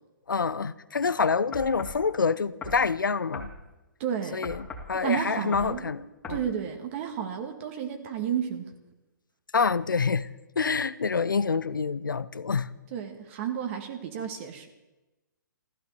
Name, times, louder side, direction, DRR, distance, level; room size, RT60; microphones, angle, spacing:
voice 1, 0.3-3.5 4.3-6.4 9.5-10.3 10.6-12.7, left 5 dB, 75° left, 0.8 m, -27 dB
sound 1, 1.5-2.0 2.6-2.8 3.3-3.5 4.4-4.9 5.5-5.8 6.2-6.5, left 2 dB, 15° left, 2.5 m, -38 dB
voice 2, 4.0-4.5 4.9-6.0 6.3-8.7 12.9-14.7, right 8 dB, 35° right, 1.8 m, -32 dB
15.0 x 13.0 x 6.8 m
figure-of-eight pair, 125°, 11 cm